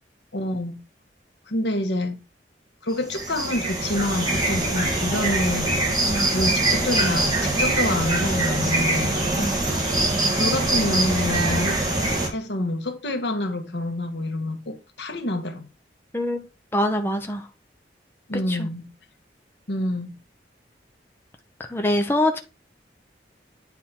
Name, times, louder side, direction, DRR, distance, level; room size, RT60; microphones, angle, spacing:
voice 1, 0.3-0.8 1.5-2.2 2.8-5.7 6.3-9.3 10.3-11.8 12.2-15.7 18.3-18.9 19.7-20.1, left 1 dB, 85° left, 1.3 m, -27 dB
sound 1, 2.9-12.3, right 2 dB, 20° right, 2.2 m, -23 dB
voice 2, 16.7-17.5 18.5-18.7 21.7-22.4, left 1 dB, 15° left, 0.8 m, -24 dB
9.4 x 3.7 x 4.4 m
head